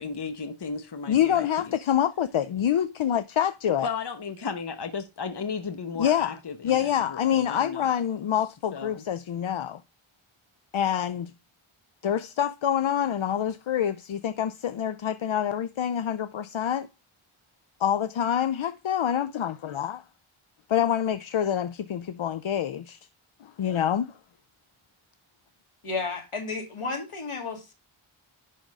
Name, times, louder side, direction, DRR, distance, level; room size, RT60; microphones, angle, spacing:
voice 1, 0.0-1.7 3.8-7.9 8.7-9.0, left 5 dB, 55° left, 1.0 m, -35 dB
voice 2, 1.1-3.9 6.0-6.4 6.6-9.8 10.7-11.3 12.0-16.9 17.8-20.0 20.7-23.0 23.4-24.1, left 9 dB, 70° left, 0.6 m, -26 dB
voice 3, 25.8-27.7, left 4 dB, 90° left, 2.5 m, -32 dB
11.0 x 3.7 x 5.3 m
wide cardioid pair, 60°, 49 cm